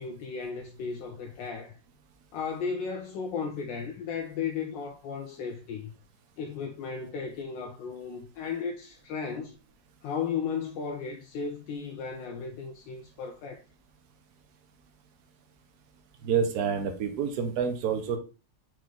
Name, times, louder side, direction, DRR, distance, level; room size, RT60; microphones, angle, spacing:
voice 1, 0.0-1.8 2.3-6.0 6.4-9.6 10.0-13.6, left 6 dB, 80° left, 1.2 m, -35 dB
voice 2, 16.2-18.2, right 7 dB, 65° right, 1.3 m, -28 dB
4.6 x 3.1 x 3.7 m
omnidirectional pair, 2.0 m